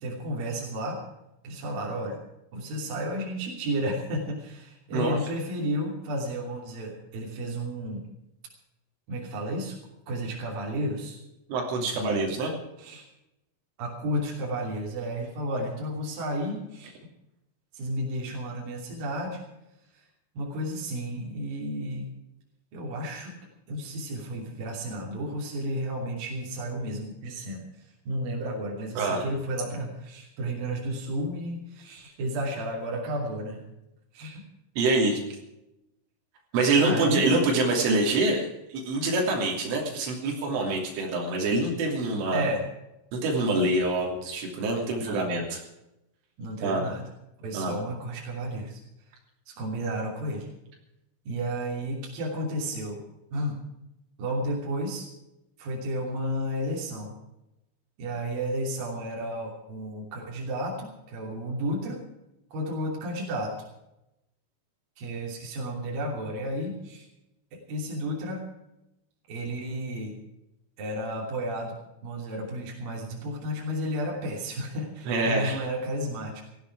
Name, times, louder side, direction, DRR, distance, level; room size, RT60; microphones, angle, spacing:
voice 1, 0.0-1.0 1.4-2.2 2.5-8.0 9.1-9.8 10.1-11.2 11.9-12.3 12.8-13.1 13.8-17.0 17.7-19.4 19.9-20.0 20.3-22.1 22.7-23.3 23.7-27.7 28.1-33.6 34.1-34.4 36.8-37.2 42.3-42.6 45.0-45.3 46.4-47.0 47.4-48.8 49.5-50.5 51.3-53.0 53.3-53.6 54.2-55.1 55.6-57.2 58.0-62.0 62.5-63.6 65.0-67.1 67.5-68.4 69.3-70.1 70.8-71.8 72.0-76.4, equal, 50° right, -2 dB, 4.4 m, -32 dB
voice 2, 11.5-12.5 29.0-29.3 34.8-35.2 36.5-42.5 43.1-45.6 46.6-46.9 47.5-47.8 75.1-75.6, right 2 dB, 90° right, 0 dB, 5.5 m, -25 dB
18.0 x 15.0 x 4.8 m, 0.89 s
omnidirectional pair, 5.5 m